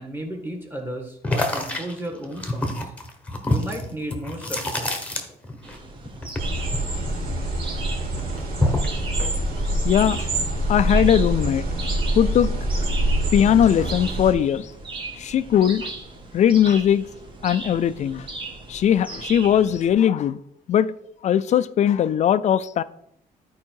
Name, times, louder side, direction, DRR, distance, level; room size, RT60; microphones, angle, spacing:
voice 1, 0.0-2.9 3.4-4.9, right 1 dB, 10° right, 1.8 m, -33 dB
sound 1, 1.2-5.8 6.0-7.7 8.0-9.0, left 1 dB, 10° left, 1.1 m, -27 dB
sound 2, 5.6-19.9, right 3 dB, 30° right, 1.4 m, -38 dB
sound 3, 6.4-14.3, right 1 dB, 65° right, 3.2 m, -25 dB
voice 2, 9.8-10.3 10.7-11.7 12.2-12.5 13.3-14.7 15.2-15.9 16.3-17.0 17.4-18.3 18.7-20.4 20.7-20.9 21.2-22.8, left 9 dB, 45° left, 0.4 m, -19 dB
12.5 x 4.7 x 4.6 m
cardioid pair, 160°, 17 cm